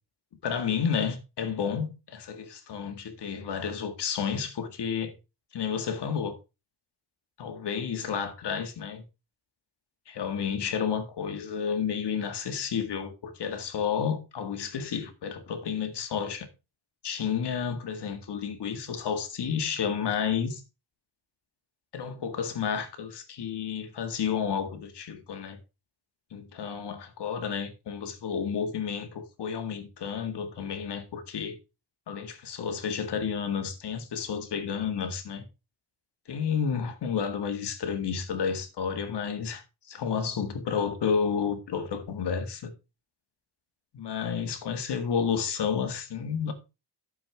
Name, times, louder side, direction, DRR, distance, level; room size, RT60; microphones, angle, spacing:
voice 1, 0.4-5.2 5.5-6.4 7.4-9.0 10.1-16.5 17.0-20.6 21.9-25.6 26.3-31.6 32.1-35.4 36.3-42.7 43.9-46.5, left 7 dB, 75° left, 1.9 m, -31 dB
12.5 x 6.9 x 3.5 m
wide cardioid pair, 175°, 41 cm